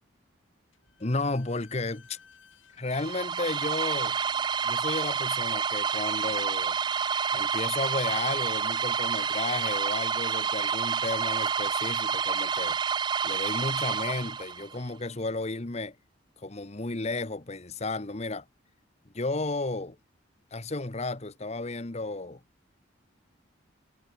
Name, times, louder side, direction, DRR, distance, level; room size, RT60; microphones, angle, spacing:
Slam / Squeak, 0.7-8.0, left 5 dB, 75° left, 5.7 m, -61 dB
voice 1, 1.0-2.2 2.8-4.2 4.6-6.8 7.3-12.8 13.2-16.0 16.4-18.4 19.1-20.0 20.5-22.4, left 2 dB, 35° left, 1.1 m, -33 dB
sound 1, 2.9-14.8, right 6 dB, 20° right, 0.3 m, -29 dB
head